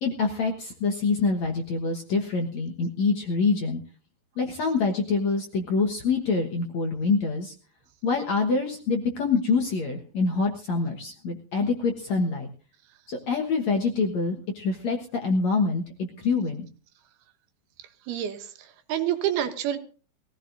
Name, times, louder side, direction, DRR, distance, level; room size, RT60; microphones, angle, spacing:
voice 1, 0.0-3.8 4.4-7.5 8.0-12.5 13.1-16.6, left 4 dB, 60° left, 3 dB, 2.0 m, -26 dB
voice 2, 18.1-19.8, right 11 dB, 75° right, 7 dB, 3.0 m, -28 dB
22.0 x 16.0 x 2.6 m, 0.38 s
omnidirectional pair, 4.9 m